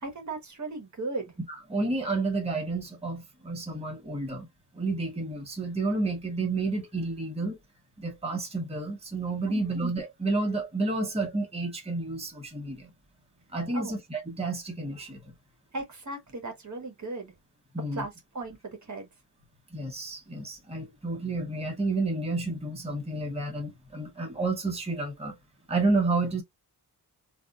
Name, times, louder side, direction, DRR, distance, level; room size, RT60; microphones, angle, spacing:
voice 1, 0.0-1.4 9.5-9.8 13.7-14.0 15.7-17.3 17.9-19.1, right 3 dB, 45° right, 1.4 m, -37 dB
voice 2, 1.7-4.5 4.7-7.6 8.0-12.9 13.5-15.2 17.7-18.0 19.7-25.4 25.7-26.4, right 3 dB, 15° right, 1.2 m, -30 dB
3.4 x 2.5 x 2.4 m
cardioid pair, 80°, 40 cm